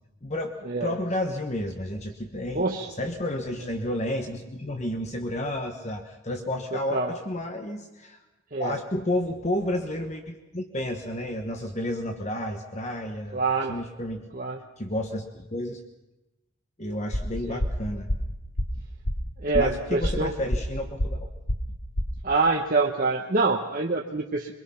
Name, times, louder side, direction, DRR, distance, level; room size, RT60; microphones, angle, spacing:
voice 1, 0.2-0.5 0.8-2.6 3.0-8.2 8.6-13.4 13.7-14.2 14.8-15.8 16.8-18.1 19.5-21.3, left 1 dB, 35° left, 4 dB, 1.2 m, -31 dB
voice 2, 2.5-2.9 6.9-7.1 8.5-8.8 13.3-13.8 14.3-14.6 17.5-17.6 19.4-20.3 22.2-24.5, right 3 dB, 40° right, 0 dB, 1.1 m, -25 dB
sound 1, 17.1-22.2, equal, 75° left, 1.8 m, -28 dB
23.5 x 22.5 x 5.8 m, 1.0 s
head